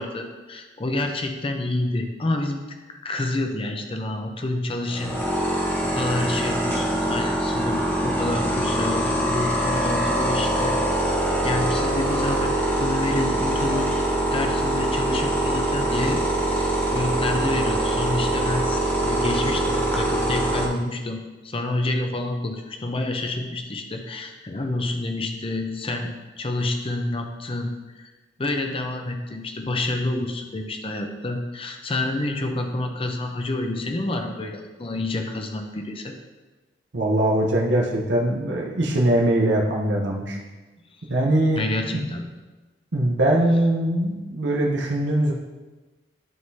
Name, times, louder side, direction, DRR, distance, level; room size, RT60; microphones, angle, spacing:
voice 1, 0.0-2.6 3.0-5.2 5.8-10.8 11.4-13.9 14.3-28.1 28.4-36.1 41.6-42.3, left 2 dB, 30° left, 4 dB, 0.6 m, -28 dB
sound 1, 4.9-20.7, right 1 dB, 10° left, 0.9 m, -24 dB
voice 2, 36.9-40.4 41.1-41.6 42.9-45.3, right 1 dB, 75° right, -2 dB, 0.9 m, -21 dB
11.0 x 3.8 x 2.8 m, 1.2 s
head